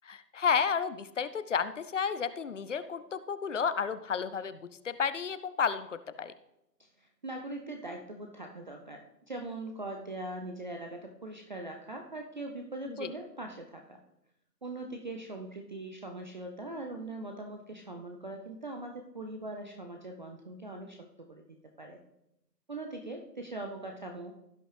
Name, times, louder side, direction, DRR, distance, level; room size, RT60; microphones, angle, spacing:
voice 1, 0.0-6.3 12.9-13.1, left 6 dB, 50° left, 13 dB, 0.6 m, -32 dB
voice 2, 7.0-14.0 14.6-21.4 21.8-22.0 22.7-24.4, right 2 dB, 30° right, 3 dB, 0.6 m, -41 dB
16.0 x 6.2 x 3.3 m, 0.85 s
figure-of-eight pair, 140°, 50 cm